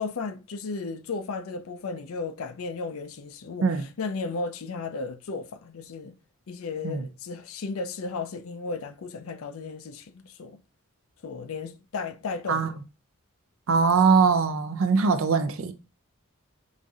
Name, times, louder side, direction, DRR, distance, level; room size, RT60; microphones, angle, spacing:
voice 1, 0.0-6.2 6.5-10.6 11.2-12.8, left 4 dB, 85° left, 0.5 m, -34 dB
voice 2, 13.7-15.7, right 5 dB, 70° right, 0.5 m, -22 dB
5.0 x 2.6 x 2.4 m
head